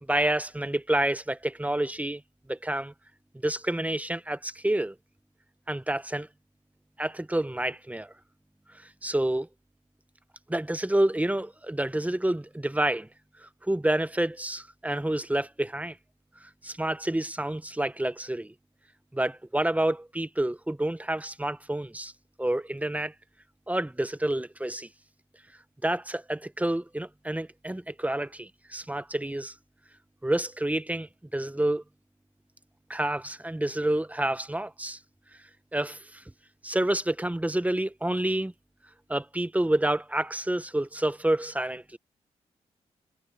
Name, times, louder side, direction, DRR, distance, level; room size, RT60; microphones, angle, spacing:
voice 1, 0.0-2.2 2.5-2.9 3.4-5.0 5.7-6.3 7.0-8.1 8.7-9.5 10.5-13.1 13.4-16.0 16.4-18.5 19.1-22.1 22.4-23.1 23.7-24.9 25.8-29.5 30.2-31.8 32.9-35.0 35.7-36.2 36.6-38.5 39.1-42.0, right 1 dB, 10° right, 1.4 m, -28 dB
supercardioid pair, 45°, 14 cm